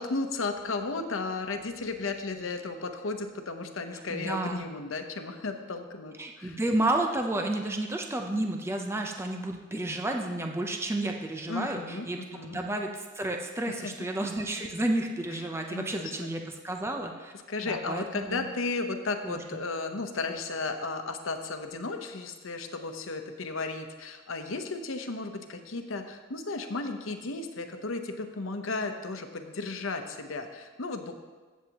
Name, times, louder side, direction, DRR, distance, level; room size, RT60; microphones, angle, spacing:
voice 1, 0.0-6.6 11.5-12.1 12.3-12.6 13.7-13.9 15.3-15.4 15.7-16.3 17.5-31.1, left 3 dB, 85° left, 6 dB, 0.9 m, -34 dB
voice 2, 4.1-4.6 6.2-17.3 17.6-18.4 19.2-19.4, right 1 dB, 15° right, 2 dB, 0.6 m, -31 dB
15.0 x 7.3 x 2.9 m, 1.4 s
head